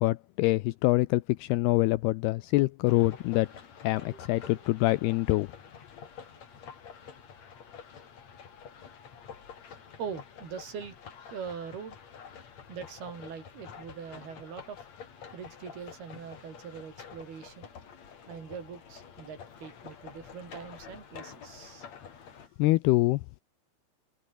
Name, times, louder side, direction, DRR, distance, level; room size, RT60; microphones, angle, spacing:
voice 1, 0.0-3.5 3.8-5.5 22.6-23.4, left 20 dB, 85° left, 2.3 m, -25 dB
sound 1, 2.8-22.5, left 7 dB, 40° left, 3.4 m, -48 dB
voice 2, 4.0-4.7 6.0-6.4 7.0-7.1 9.5-11.0 11.3-12.0 12.7-14.9 15.2-17.8 18.3-21.9, right 7 dB, 55° right, 6.1 m, -43 dB
omnidirectional pair, 5.3 m